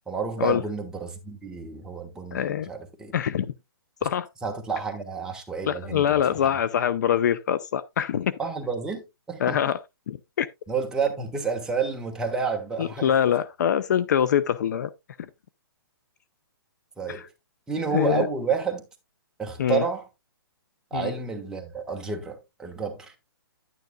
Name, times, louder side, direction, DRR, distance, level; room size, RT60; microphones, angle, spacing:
voice 1, 0.1-3.1 4.4-6.6 8.4-9.6 10.7-13.1 17.0-17.3 17.7-18.8 19.4-20.1 20.9-23.2, right 5 dB, 5° right, 1.2 m, -30 dB
voice 2, 2.3-2.7 3.1-3.5 4.0-4.3 5.7-8.4 9.4-9.8 10.1-10.5 12.8-14.9 17.1-17.2 17.9-18.3 19.6-19.8 20.9-21.1, left 9 dB, 50° left, 0.5 m, -24 dB
10.5 x 9.2 x 2.2 m
hypercardioid pair, 160°, 13 cm